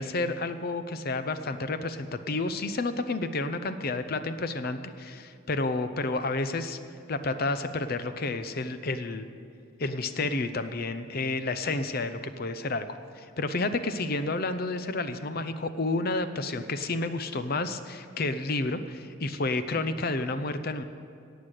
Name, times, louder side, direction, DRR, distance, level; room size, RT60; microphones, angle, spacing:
voice 1, 0.0-6.8 7.1-9.3 9.8-12.8 13.1-20.8, left 2 dB, 45° left, 10 dB, 0.7 m, -30 dB
17.5 x 8.3 x 6.6 m, 2.5 s
head